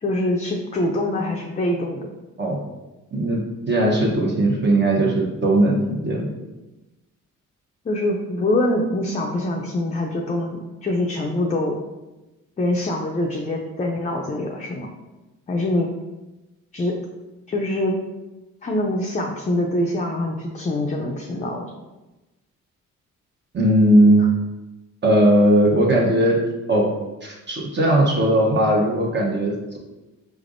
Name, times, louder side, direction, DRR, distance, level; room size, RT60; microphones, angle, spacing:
voice 1, 0.0-2.1 7.8-11.8 12.6-14.9 15.5-15.9 16.7-16.9 17.5-18.0 18.6-21.7, left 1 dB, 25° left, 0 dB, 0.5 m, -24 dB
voice 2, 3.7-6.3 23.5-24.2 25.0-26.4 26.7-26.9 27.2-29.8, right 1 dB, 35° right, -2 dB, 0.9 m, -18 dB
4.9 x 3.3 x 2.6 m, 1.1 s
cardioid pair, 90°, 30 cm